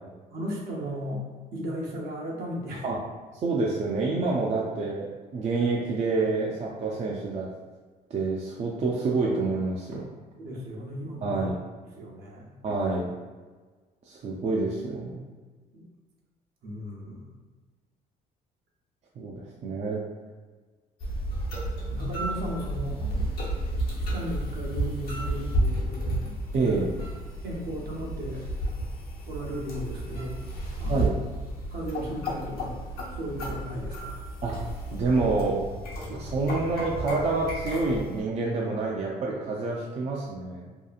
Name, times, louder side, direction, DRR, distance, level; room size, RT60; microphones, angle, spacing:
voice 1, 0.3-1.3 1.5-2.9 10.4-11.5 11.9-12.5 15.7-15.8 16.6-17.3 21.9-23.3 23.9-26.8 27.4-28.4 29.3-30.4 30.8-31.2 31.7-32.8 33.1-34.2, equal, 65° right, -3 dB, 0.7 m, -35 dB
voice 2, 3.4-7.5 8.1-10.1 11.2-11.6 12.6-13.1 14.1-15.2 19.2-20.0 26.5-26.8 30.9-31.2 34.4-34.6 34.9-35.6 36.1-40.7, right 3 dB, 40° right, -3 dB, 0.4 m, -27 dB
sound 1, 21.0-38.2, right 1 dB, 65° left, 0.7 m, -32 dB
2.8 x 2.3 x 2.4 m, 1.4 s
cardioid pair, 110°, 17 cm